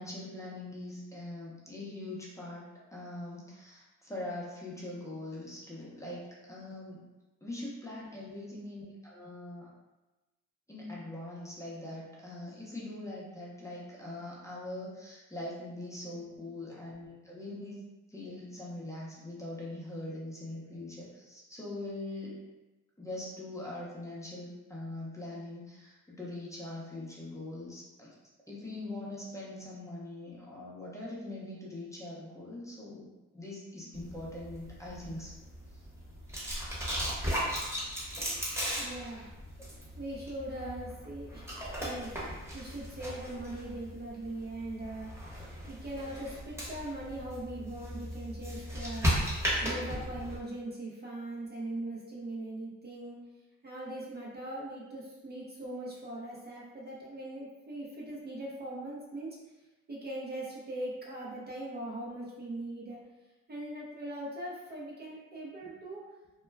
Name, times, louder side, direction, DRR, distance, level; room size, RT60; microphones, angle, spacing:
voice 1, 0.0-7.0 7.4-9.7 10.7-17.8 18.1-22.4 23.0-28.1 28.5-33.1 33.3-35.3 35.7-35.9, left 1 dB, 10° left, -6 dB, 0.7 m, -42 dB
sound 1, 33.9-50.4, equal, 10° right, 1.0 m, -37 dB
voice 2, 38.8-39.3 40.0-42.1 42.5-45.1 45.7-49.1 49.6-53.2 53.6-59.4 59.9-63.0 63.5-66.0, right 1 dB, 35° right, -5 dB, 0.6 m, -40 dB
2.2 x 2.1 x 3.3 m, 1.1 s
cardioid pair, 90°, 30 cm